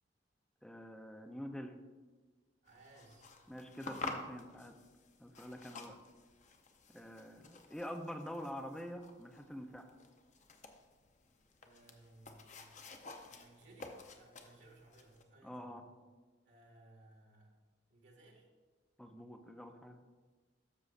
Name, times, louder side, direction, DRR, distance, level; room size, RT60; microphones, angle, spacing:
voice 1, 0.6-1.8 3.5-4.8 5.2-6.0 6.9-9.9 15.4-15.9 19.0-20.0, equal, 5° left, 5 dB, 0.5 m, -46 dB
voice 2, 2.6-3.3 11.6-12.7 13.3-15.8 16.4-17.6 17.9-18.5, right 2 dB, 80° right, -1 dB, 1.6 m, -61 dB
sound 1, 2.7-15.2, left 3 dB, 40° left, 0.7 m, -51 dB
12.5 x 6.5 x 2.5 m, 1.4 s
head